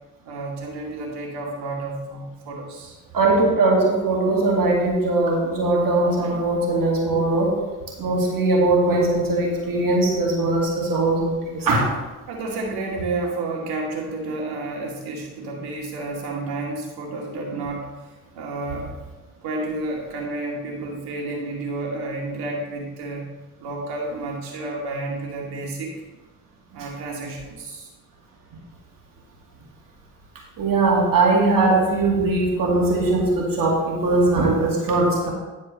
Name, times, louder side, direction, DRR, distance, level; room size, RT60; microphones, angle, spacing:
voice 1, 0.2-3.0 12.3-17.9 18.3-18.9 19.4-23.3 23.6-25.9 26.7-27.9, right 2 dB, 70° right, -1 dB, 2.4 m, -30 dB
voice 2, 3.1-7.5 8.0-11.9 30.6-35.3, right 2 dB, 55° right, -1 dB, 2.4 m, -20 dB
11.5 x 4.5 x 5.2 m, 1.2 s
hypercardioid pair, 50°, 39 cm